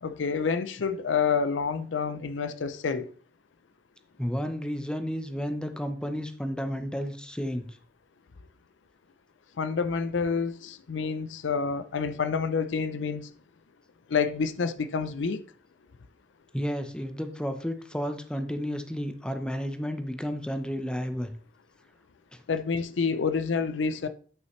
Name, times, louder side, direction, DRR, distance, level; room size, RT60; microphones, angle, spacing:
voice 1, 0.0-3.1 9.6-13.3 14.1-15.4 22.5-24.1, left 5 dB, 90° left, 0.5 m, -28 dB
voice 2, 4.2-7.7 16.5-21.3 22.3-22.4, equal, 5° left, 0.7 m, -32 dB
9.4 x 5.5 x 3.1 m
head